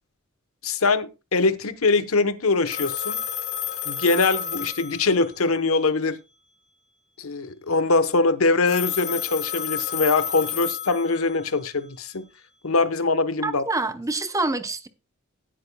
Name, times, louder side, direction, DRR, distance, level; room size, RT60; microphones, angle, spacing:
voice 1, 0.6-3.2 3.9-6.2 7.2-12.2 12.6-13.6, left 3 dB, 85° left, 1.0 m, -23 dB
Telephone, 2.7-5.5 8.7-11.5, left 9 dB, 50° left, 4.1 m, -31 dB
voice 2, 13.4-14.9, right 2 dB, 15° right, 0.8 m, -26 dB
17.0 x 8.7 x 2.3 m
head